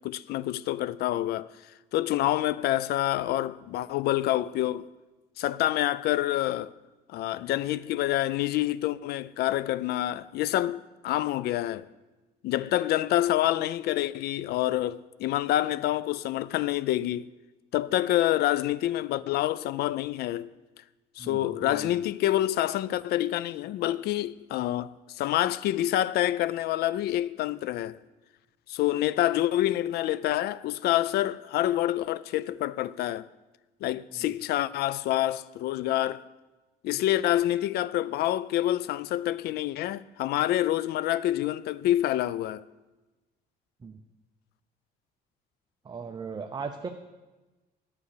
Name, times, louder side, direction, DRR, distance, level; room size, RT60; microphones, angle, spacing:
voice 1, 0.0-1.5 1.9-4.9 5.4-6.7 7.1-11.8 12.4-17.3 17.7-20.5 21.2-28.0 28.7-33.3 33.8-36.2 36.8-42.6, left 14 dB, 70° left, 0.4 m, -27 dB
voice 2, 21.2-21.9 43.8-44.0 45.9-46.9, right 5 dB, 25° right, 0.6 m, -37 dB
9.5 x 8.6 x 6.6 m
cardioid pair, 110°, 17 cm